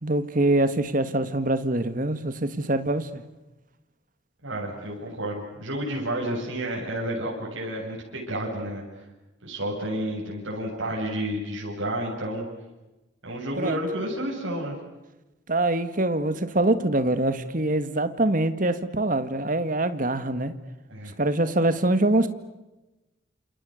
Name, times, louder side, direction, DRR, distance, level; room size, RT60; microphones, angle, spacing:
voice 1, 0.0-3.2 13.6-13.8 15.5-20.5 21.2-22.3, right 1 dB, 45° right, 11 dB, 1.9 m, -24 dB
voice 2, 4.4-8.8 9.4-12.4 13.2-14.8 20.9-21.1, right 1 dB, 90° right, -3 dB, 7.8 m, -30 dB
29.0 x 28.0 x 6.6 m, 1.0 s
head